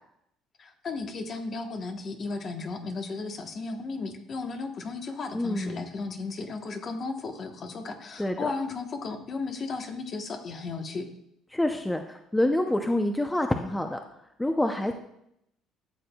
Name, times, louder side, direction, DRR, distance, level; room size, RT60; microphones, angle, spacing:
voice 1, 0.6-11.1, left 3 dB, 45° left, 6 dB, 1.1 m, -35 dB
voice 2, 5.3-5.9 8.2-8.5 11.5-14.0 14.4-14.9, left 1 dB, 10° left, 5 dB, 0.6 m, -27 dB
13.0 x 6.7 x 2.3 m, 0.78 s
supercardioid pair, 95°, 0 cm